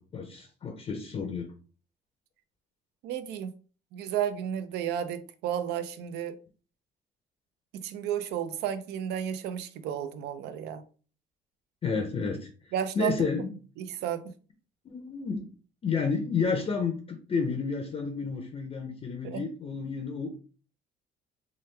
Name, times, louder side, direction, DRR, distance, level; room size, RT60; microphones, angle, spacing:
voice 1, 0.0-1.5 11.8-13.5 14.8-15.5 15.8-20.3, left 5 dB, 35° left, 0.5 m, -31 dB
voice 2, 3.0-3.5 3.9-6.4 7.8-10.8 12.7-13.5 13.8-14.3 19.2-19.4, right 9 dB, 80° right, 0.5 m, -32 dB
3.1 x 2.3 x 3.2 m
cardioid pair, 110°, 17 cm